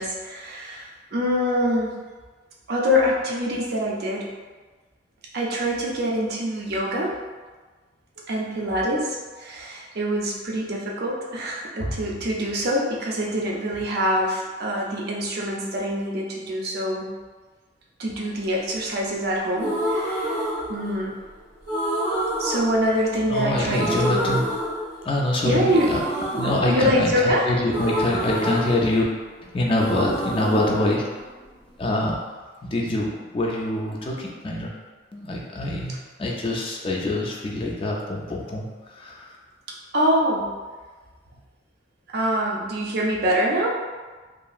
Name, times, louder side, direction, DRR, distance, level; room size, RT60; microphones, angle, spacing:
voice 1, 0.0-1.9 2.7-4.4 5.3-7.2 8.3-17.1 18.0-21.1 22.4-24.4 25.4-25.9 26.7-27.4 39.9-40.5 42.1-43.7, equal, 55° right, -2 dB, 0.5 m, -25 dB
sound 1, 19.5-21.2 21.7-23.4 23.7-25.3 25.7-29.4 29.6-31.7, right 1 dB, 90° right, 1.0 m, -28 dB
voice 2, 23.3-24.4 25.0-26.0 26.3-29.0 29.4-31.1 31.8-32.2 32.7-34.7 35.1-39.4, left 1 dB, 30° left, -1 dB, 0.3 m, -25 dB
2.8 x 2.4 x 2.3 m, 1.3 s
head